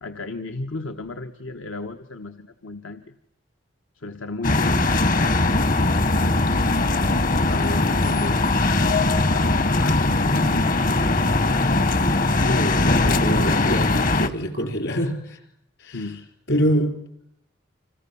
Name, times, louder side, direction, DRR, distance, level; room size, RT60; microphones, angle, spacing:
voice 1, 0.0-3.1 3.9-4.8 7.5-8.5 9.1-10.8 15.9-16.2, left 2 dB, 85° left, 6 dB, 1.3 m, -35 dB
sound 1, 4.4-14.3, left 2 dB, 45° left, 1.1 m, -20 dB
voice 2, 12.4-15.4 15.8-16.0 16.5-17.0, equal, 60° left, 6 dB, 4.3 m, -25 dB
29.5 x 26.5 x 7.1 m, 0.74 s
head